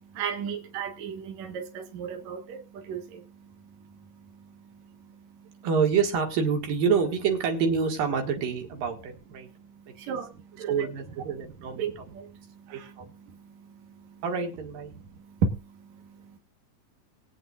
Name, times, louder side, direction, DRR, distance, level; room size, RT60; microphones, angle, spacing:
voice 1, 0.0-5.7 9.4-10.9 11.8-14.2 15.0-16.4, right 6 dB, 60° right, 4 dB, 2.5 m, -36 dB
voice 2, 5.6-9.5 10.1-10.2 10.7-11.8 12.7-13.1 14.2-14.9, right 6 dB, 75° right, 3 dB, 3.6 m, -27 dB
21.5 x 8.5 x 2.5 m, 0.28 s
omnidirectional pair, 4.1 m